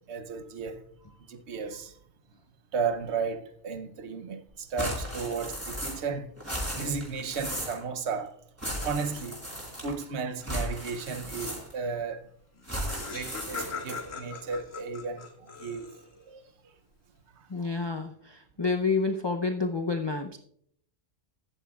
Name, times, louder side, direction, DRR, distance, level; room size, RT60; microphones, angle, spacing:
voice 1, 0.1-1.9 2.7-6.3 6.7-8.4 8.8-9.5 9.8-12.3 13.1-15.9 16.3-16.8 17.3-17.7, right 5 dB, 65° right, 1.1 m, -34 dB
sound 1, 4.8-6.1 6.4-7.8 8.6-10.0 10.4-11.9 12.6-14.1, equal, 10° right, 4.4 m, -36 dB
Laughter, 12.3-12.4 12.6-16.2, left 4 dB, 90° left, 2.2 m, -40 dB
voice 2, 17.5-20.4, left 4 dB, 30° left, 0.5 m, -29 dB
14.5 x 11.0 x 2.4 m
omnidirectional pair, 1.3 m